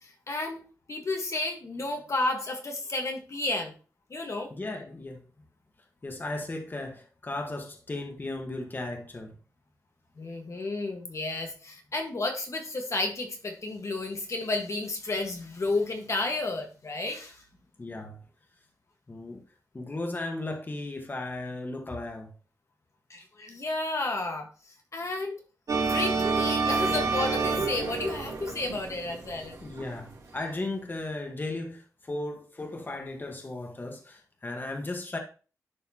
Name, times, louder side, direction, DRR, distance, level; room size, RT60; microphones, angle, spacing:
voice 1, 0.0-3.7 4.1-4.5 10.2-17.4 23.1-25.3 25.8-29.6, left 2 dB, 50° left, 1.5 m, -32 dB
voice 2, 4.5-5.2 6.0-9.3 17.8-18.2 19.1-19.4 19.7-22.3 29.6-35.2, left 2 dB, 30° left, 1.4 m, -36 dB
sound 1, 25.7-30.1, right 4 dB, 65° right, 3.0 m, -28 dB
11.0 x 4.3 x 2.9 m
cardioid pair, 70°, 6 cm